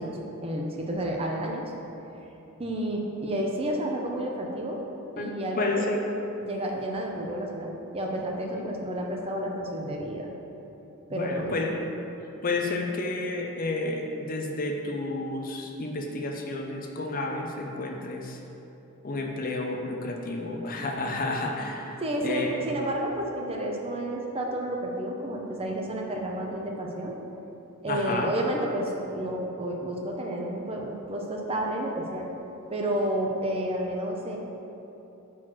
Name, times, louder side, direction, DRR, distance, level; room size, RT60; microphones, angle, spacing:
voice 1, 0.0-1.7 2.6-4.8 5.2-5.9 6.4-10.3 11.1-11.6 22.0-27.1 27.8-32.3 32.7-34.4, right 1 dB, 25° right, 0 dB, 0.7 m, -31 dB
voice 2, 5.2-6.0 8.5-8.7 11.1-11.9 12.4-18.4 19.0-22.6 27.9-28.3, left 2 dB, 40° left, 2 dB, 0.6 m, -31 dB
6.0 x 4.6 x 6.1 m, 3.0 s
head